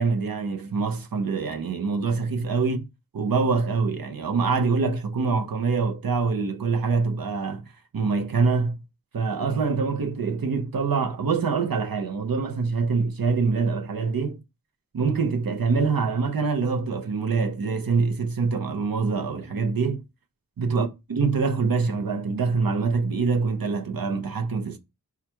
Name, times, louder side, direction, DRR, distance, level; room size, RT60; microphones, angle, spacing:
voice 1, 0.0-2.8 3.1-7.7 7.9-8.8 9.1-14.4 14.9-20.0 20.6-24.8, right 4 dB, 75° right, 0.7 m, -25 dB
4.7 x 2.4 x 4.4 m
wide cardioid pair, 45°, 35 cm